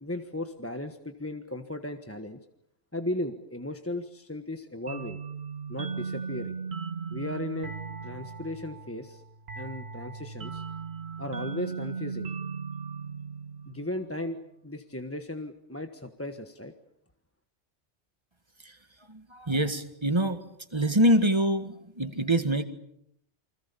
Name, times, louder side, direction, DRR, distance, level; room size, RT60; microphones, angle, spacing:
voice 1, 0.0-2.4 2.9-5.2 5.7-6.6 7.1-7.7 8.0-9.2 9.5-10.6 11.2-12.3 13.6-14.4 14.6-16.7, left 1 dB, 10° left, 6 dB, 1.4 m, -36 dB
sound 1, 4.9-14.2, right 5 dB, 65° right, 1.9 m, -37 dB
voice 2, 19.1-20.4 20.7-22.6, right 1 dB, 25° right, 8 dB, 1.9 m, -25 dB
29.5 x 25.5 x 7.0 m, 0.76 s
omnidirectional pair, 1.1 m